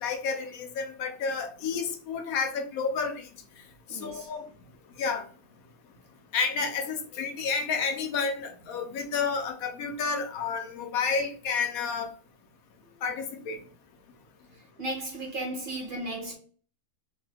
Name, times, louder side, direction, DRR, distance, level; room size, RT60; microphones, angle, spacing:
voice 1, 0.0-3.3 3.9-4.4 5.0-5.2 6.3-12.1 13.0-13.6, left 5 dB, 85° left, 1.1 m, -30 dB
voice 2, 3.9-4.3 14.8-16.4, right 1 dB, 45° right, 1.0 m, -35 dB
3.0 x 2.1 x 3.3 m
omnidirectional pair, 1.5 m